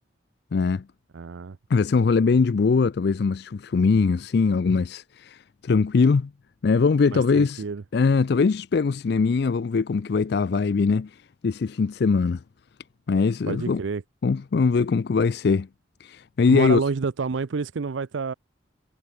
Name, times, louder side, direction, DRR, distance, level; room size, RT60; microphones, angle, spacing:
voice 1, 0.5-0.8 1.7-6.3 6.6-7.6 7.9-11.1 11.4-12.4 13.1-13.8 14.2-15.7 16.0-16.8, left 4 dB, 55° left, 0.4 m, -21 dB
voice 2, 1.1-1.6 7.1-7.8 13.5-14.0 16.5-18.3, right 4 dB, 75° right, 0.5 m, -28 dB
head